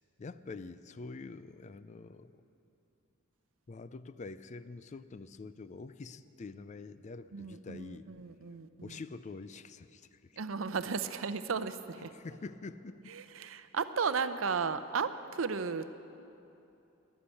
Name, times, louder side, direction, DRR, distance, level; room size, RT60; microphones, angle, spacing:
voice 1, 0.0-2.4 3.7-8.1 8.8-10.4 12.0-13.2, left 3 dB, 35° left, 14 dB, 0.4 m, -46 dB
voice 2, 7.3-9.0 10.4-12.1 13.1-15.9, right 5 dB, 75° right, 11 dB, 0.6 m, -35 dB
13.0 x 10.5 x 8.3 m, 2.8 s
head